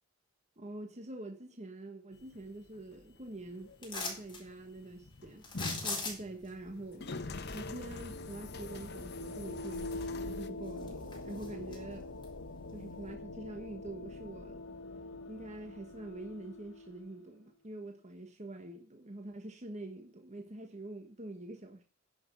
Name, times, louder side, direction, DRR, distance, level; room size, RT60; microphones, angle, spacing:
voice 1, 0.6-5.4 5.8-7.1 7.5-12.1 12.7-14.6 15.3-21.8, right 2 dB, 35° right, 1.3 m, -45 dB
sound 1, 2.1-10.5, left 3 dB, 55° left, 1.2 m, -46 dB
sound 2, 3.8-4.4 5.4-6.5 9.0-9.1 9.6-10.3 10.7-11.8 12.2-12.3, left 3 dB, 25° left, 4.3 m, -39 dB
sound 3, 6.7-17.3, left 2 dB, 90° left, 1.3 m, -44 dB
10.5 x 6.4 x 7.1 m
head